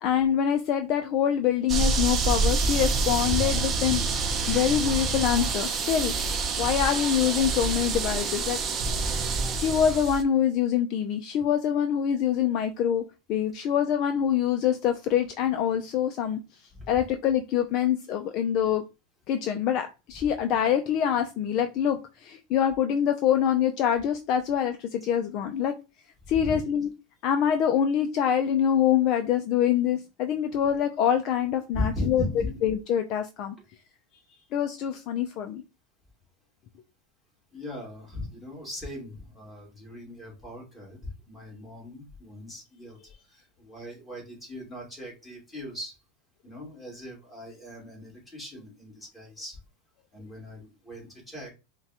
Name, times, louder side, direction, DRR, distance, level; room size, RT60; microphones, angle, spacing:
voice 1, 0.0-4.0 4.5-6.1 6.6-8.6 9.5-13.0 13.3-16.4 16.9-18.8 19.3-25.8 26.3-26.9 27.2-32.2 32.6-33.5 34.5-35.6, left 9 dB, 45° left, 7 dB, 0.4 m, -25 dB
sound 1, 1.7-10.2, right 4 dB, 25° right, 0.7 m, -27 dB
voice 2, 26.2-26.6 31.7-32.6 33.6-33.7 37.5-43.0 43.3-46.0 46.4-49.6 50.1-51.5, left 1 dB, 10° left, -3 dB, 2.2 m, -38 dB
5.6 x 2.2 x 2.9 m, 0.28 s
supercardioid pair, 140°, 0 cm